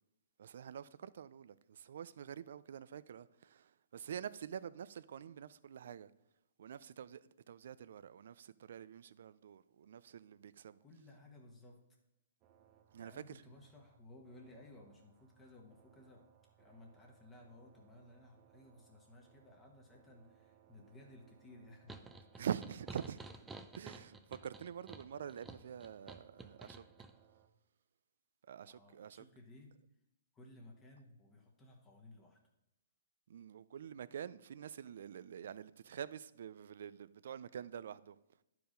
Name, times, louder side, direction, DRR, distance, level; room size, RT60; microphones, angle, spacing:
voice 1, 0.4-6.1 6.6-10.8 12.9-13.2 22.4-23.2 23.7-26.8 28.5-29.2 33.3-38.2, right 8 dB, 65° right, 0.4 m, -46 dB
voice 2, 10.8-11.8 13.0-16.3 16.6-22.0 28.6-29.8 30.3-32.4, left 2 dB, 15° left, 1.2 m, -58 dB
sound 1, 12.4-27.5, right 9 dB, 30° right, 1.0 m, -69 dB
sound 2, 21.9-27.1, right 3 dB, 10° right, 0.5 m, -52 dB
10.5 x 4.7 x 5.1 m
hypercardioid pair, 145°, 0 cm